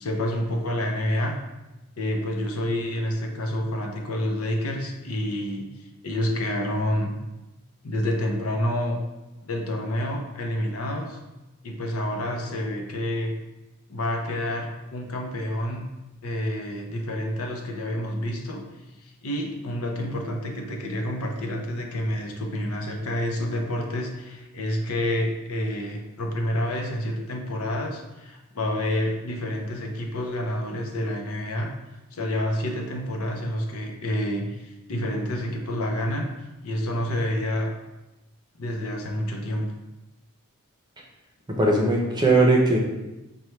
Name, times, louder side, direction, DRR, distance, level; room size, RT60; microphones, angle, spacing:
voice 1, 0.0-1.4 2.0-7.1 7.8-9.0 9.4-11.2 11.6-13.3 13.9-15.9 16.2-18.6 19.0-31.7 32.1-36.3 36.6-37.7 38.6-39.7, left 1 dB, 90° left, 2 dB, 0.6 m, -28 dB
voice 2, 41.6-42.8, right 2 dB, 20° right, -1 dB, 0.6 m, -19 dB
5.4 x 2.2 x 3.1 m, 1.0 s
head